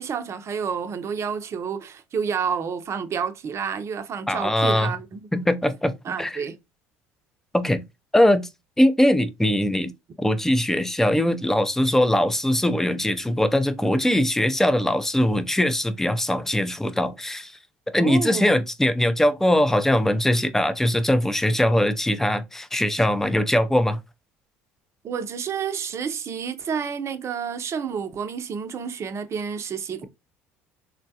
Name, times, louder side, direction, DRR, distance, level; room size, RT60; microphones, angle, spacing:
voice 1, 0.0-5.3 6.0-6.6 18.0-18.6 25.0-30.0, right 6 dB, 45° right, 0.6 m, -29 dB
voice 2, 4.3-4.9 5.3-6.4 7.5-7.8 8.1-8.5 8.8-9.9 10.2-17.5 17.9-24.0, left 1 dB, 5° left, 0.5 m, -21 dB
3.8 x 2.2 x 2.7 m
hypercardioid pair, 70°, 7 cm